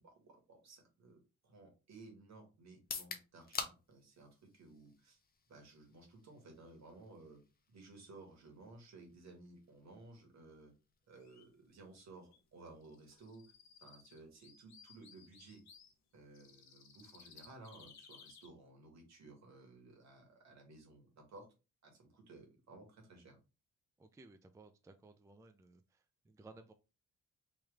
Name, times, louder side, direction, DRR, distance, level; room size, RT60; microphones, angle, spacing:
voice 1, 0.0-5.2 5.5-7.4 7.7-10.7 11.1-13.4 13.8-15.6 16.1-21.5 21.8-23.4, right 2 dB, 65° right, 1.7 m, -57 dB
sound 1, 2.7-16.6, left 5 dB, 30° left, 0.7 m, -52 dB
sound 2, 11.1-11.4 12.0-12.1 12.3-12.4 12.8-15.9 16.3-18.5, left 6 dB, 65° left, 1.1 m, -60 dB
voice 2, 24.0-26.7, right 3 dB, 10° right, 0.4 m, -59 dB
3.2 x 3.1 x 3.4 m
cardioid pair, 90°, 30 cm